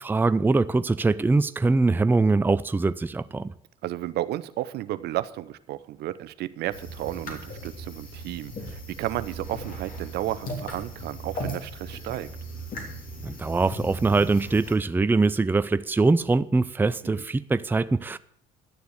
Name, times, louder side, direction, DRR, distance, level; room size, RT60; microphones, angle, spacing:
voice 1, 0.0-3.5 13.2-18.2, right 3 dB, 10° right, 0.5 m, -23 dB
voice 2, 3.8-12.3 17.0-17.2, right 14 dB, 65° right, 0.7 m, -33 dB
sound 1, 6.7-14.7, right 1 dB, 50° left, 3.4 m, -37 dB
11.5 x 6.9 x 7.9 m
supercardioid pair, 70°, 18 cm